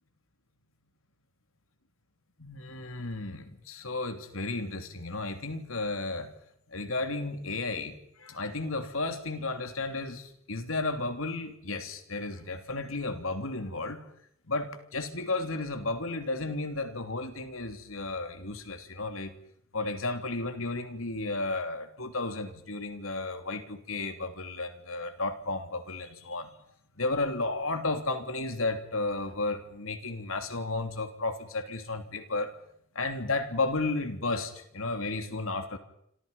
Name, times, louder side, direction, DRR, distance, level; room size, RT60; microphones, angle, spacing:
voice 1, 2.4-6.3 6.7-14.0 14.5-19.3 19.7-26.5 27.0-32.5 32.9-35.8, left 2 dB, 80° left, 7 dB, 3.0 m, -33 dB
28.5 x 26.0 x 5.5 m, 0.69 s
head